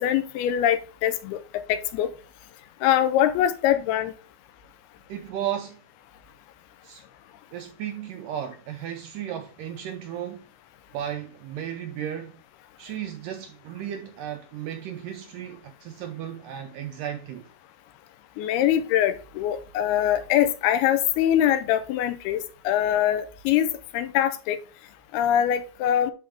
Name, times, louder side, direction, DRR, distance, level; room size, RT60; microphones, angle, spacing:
voice 1, 0.0-1.4 1.7-2.1 2.8-4.1 18.4-23.7 23.9-24.6 25.1-26.1, left 11 dB, 90° left, 2.7 m, -23 dB
voice 2, 5.1-5.8 6.8-7.0 7.5-10.5 10.9-12.4 12.8-17.5, right 10 dB, 85° right, 1.9 m, -34 dB
11.0 x 4.3 x 3.5 m
omnidirectional pair, 4.5 m